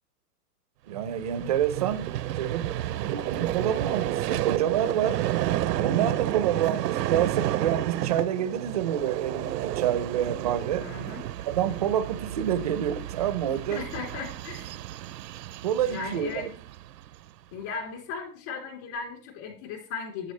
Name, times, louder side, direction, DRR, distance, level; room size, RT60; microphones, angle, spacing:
voice 1, 0.9-2.1 2.4-5.2 5.8-10.9 11.5-13.8 15.6-16.5, right 10 dB, 25° right, 0.4 m, -28 dB
Vehicle, 0.9-17.3, right 13 dB, 85° right, 0.6 m, -31 dB
voice 2, 10.8-11.2 13.7-14.7 15.9-16.5 17.5-20.3, left 5 dB, 45° left, 3.4 m, -36 dB
9.6 x 8.8 x 3.2 m
hypercardioid pair, 145°, 47 cm